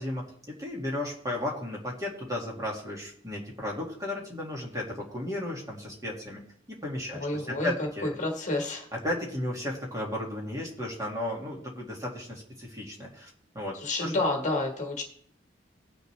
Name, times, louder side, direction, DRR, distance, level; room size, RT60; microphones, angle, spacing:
voice 1, 0.0-6.4 6.7-8.2 8.9-13.3 13.5-14.2, left 1 dB, 20° right, -2 dB, 2.2 m, -34 dB
voice 2, 7.1-8.9 13.7-15.0, left 2 dB, 40° left, 2 dB, 1.6 m, -30 dB
18.5 x 6.6 x 3.4 m, 0.64 s
head